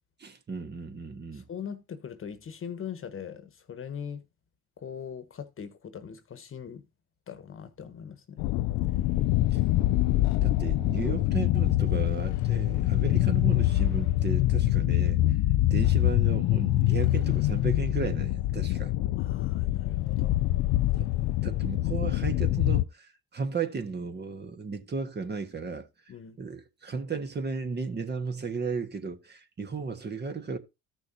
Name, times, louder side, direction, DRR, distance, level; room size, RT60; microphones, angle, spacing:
voice 1, 0.2-1.5 9.5-9.6 10.4-15.2 15.7-18.9 21.0-21.1 21.4-25.9 26.4-30.6, right 5 dB, 35° right, 1.4 m, -34 dB
voice 2, 1.3-4.2 4.8-6.8 7.3-8.5 19.2-20.4 26.1-26.4, left 7 dB, 45° left, 1.3 m, -41 dB
sound 1, 8.4-22.8, left 16 dB, 70° left, 0.4 m, -25 dB
14.0 x 6.2 x 2.8 m
supercardioid pair, 75°, 30 cm